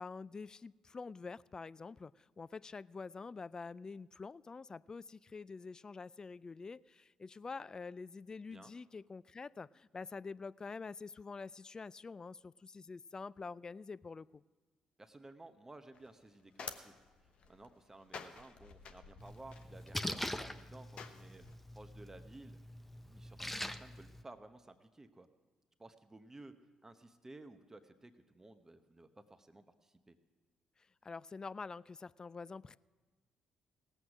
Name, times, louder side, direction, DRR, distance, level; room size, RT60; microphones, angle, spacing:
voice 1, 0.0-14.4 31.0-32.8, left 4 dB, 35° left, 21 dB, 0.3 m, -47 dB
voice 2, 15.0-17.0 17.2-21.4 21.7-22.6 23.1-25.3 25.8-26.5 26.8-30.2, right 2 dB, 20° right, 8 dB, 1.0 m, -55 dB
sound 1, 15.9-21.6, left 5 dB, 60° left, 0.9 m, -52 dB
Splash splatter, 19.2-24.2, left 1 dB, 10° left, 0.7 m, -43 dB
17.5 x 8.0 x 6.0 m, 1.2 s
hypercardioid pair, 50°, 2 cm